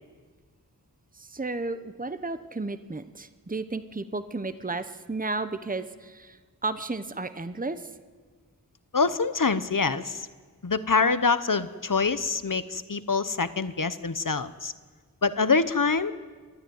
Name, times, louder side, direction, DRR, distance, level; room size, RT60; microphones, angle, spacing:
voice 1, 1.2-7.9, right 3 dB, 25° right, 11 dB, 0.9 m, -33 dB
voice 2, 8.9-10.2 10.6-14.7 15.2-16.1, left 4 dB, 60° left, 13 dB, 1.0 m, -25 dB
27.0 x 12.0 x 9.4 m, 1.5 s
wide cardioid pair, 40°, 36 cm